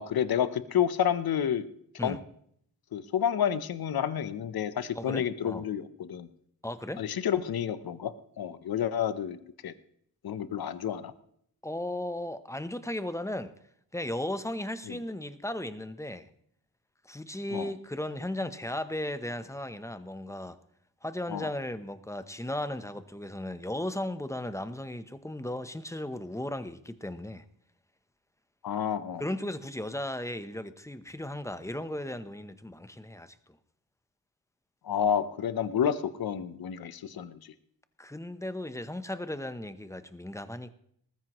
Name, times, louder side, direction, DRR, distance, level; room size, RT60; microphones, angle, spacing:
voice 1, 0.0-1.6 2.0-2.2 2.9-6.3 7.0-9.4 9.6-9.7 10.2-11.1 14.9-15.0 17.5-17.7 21.3-21.5 28.6-29.2 34.8-37.5, left 9 dB, 75° left, 0.9 m, -30 dB
voice 2, 4.9-5.7 6.6-7.1 11.6-13.5 13.9-16.3 17.0-20.6 21.0-27.4 29.2-33.3 38.0-40.7, left 1 dB, 10° left, 0.8 m, -36 dB
19.5 x 14.5 x 3.1 m
wide cardioid pair, 100°, 36 cm